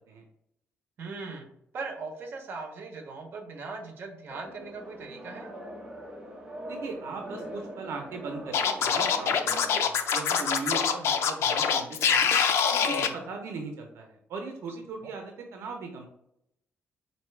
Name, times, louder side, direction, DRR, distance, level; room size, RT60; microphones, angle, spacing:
voice 1, 1.0-1.5 1.7-5.5 12.9-13.1, right 4 dB, 50° right, 3 dB, 0.8 m, -39 dB
sound 1, 4.3-9.8, right 1 dB, 20° right, 0.9 m, -41 dB
voice 2, 6.7-9.5 9.8-12.3 12.7-16.1, right 4 dB, 80° right, 3 dB, 0.6 m, -39 dB
Scratching (performance technique), 8.5-13.1, left 7 dB, 85° left, 0.4 m, -24 dB
4.4 x 2.7 x 3.2 m, 0.78 s
wide cardioid pair, 165°, 4 cm